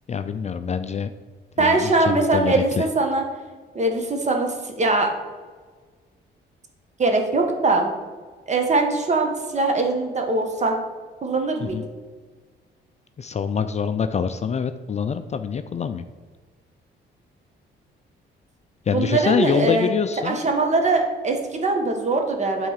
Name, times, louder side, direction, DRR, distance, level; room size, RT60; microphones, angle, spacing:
voice 1, 0.1-1.1 1.6-2.9 11.7-11.9 13.2-16.0 18.9-20.4, left 6 dB, 35° left, 10 dB, 0.4 m, -25 dB
voice 2, 1.6-3.2 3.7-5.1 7.0-7.9 8.5-10.8 11.2-11.8 18.9-19.9 20.2-22.7, right 2 dB, 35° right, 3 dB, 1.5 m, -21 dB
8.9 x 3.7 x 6.5 m, 1.4 s
cardioid pair, 90°, 20 cm